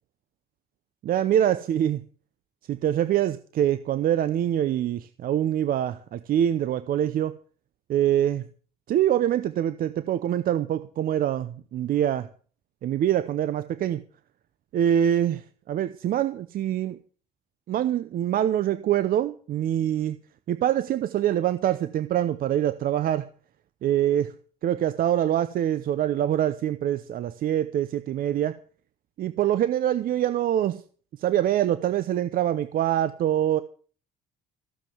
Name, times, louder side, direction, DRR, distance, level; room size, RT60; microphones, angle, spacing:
voice 1, 1.0-2.0 2.7-7.4 7.9-8.4 8.9-12.3 12.8-14.0 14.7-17.0 17.7-20.2 20.5-23.2 23.8-24.3 24.6-28.6 29.2-30.8 31.2-33.6, right 11 dB, 60° right, 0.8 m, -24 dB
15.0 x 7.5 x 7.3 m
cardioid pair, 110°, 17 cm